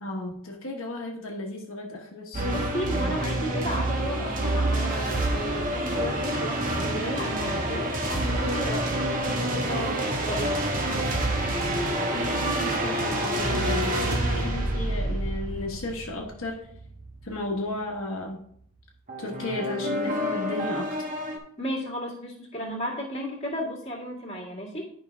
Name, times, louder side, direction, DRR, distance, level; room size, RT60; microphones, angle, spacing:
voice 1, 0.0-2.6 12.1-16.6 17.2-18.4 19.2-20.9, left 2 dB, 70° left, -1 dB, 1.3 m, -34 dB
sound 1, 2.3-17.3 19.1-21.4, right 1 dB, 40° right, 1.2 m, -27 dB
voice 2, 2.4-10.5 21.6-24.9, equal, 30° left, -4 dB, 2.2 m, -34 dB
11.0 x 5.4 x 3.5 m, 0.66 s
head